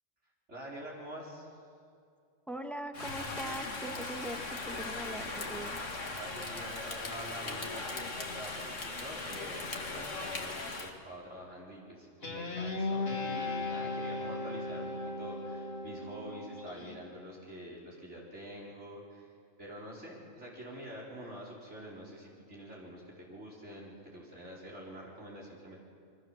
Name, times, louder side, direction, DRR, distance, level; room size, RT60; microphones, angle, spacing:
voice 1, 0.5-1.5 6.2-19.3 19.6-25.8, equal, 65° right, -4 dB, 4.9 m, -46 dB
voice 2, 2.5-5.8, equal, ahead, 5 dB, 1.8 m, -41 dB
Rain, 2.9-10.9, left 3 dB, 75° left, 2.5 m, -39 dB
Guitar, 12.2-17.0, left 2 dB, 50° left, 3.0 m, -36 dB
28.5 x 24.0 x 7.5 m, 2.4 s
omnidirectional pair, 1.3 m